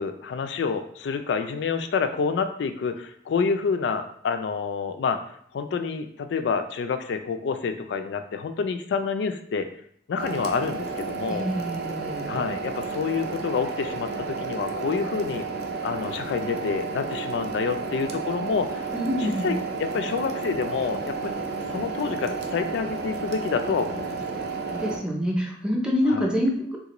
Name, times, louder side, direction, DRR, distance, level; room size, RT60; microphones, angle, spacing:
voice 1, 0.0-9.7 10.1-11.5 12.3-15.4 15.8-18.9 19.2-24.2 26.1-26.3, left 5 dB, 85° left, 8 dB, 0.3 m, -28 dB
sound 1, 10.2-25.0, right 4 dB, 65° right, 0.4 m, -32 dB
voice 2, 11.3-12.4 18.9-19.6 24.7-26.8, equal, 5° right, -1 dB, 0.5 m, -26 dB
3.4 x 2.5 x 2.9 m, 0.64 s
head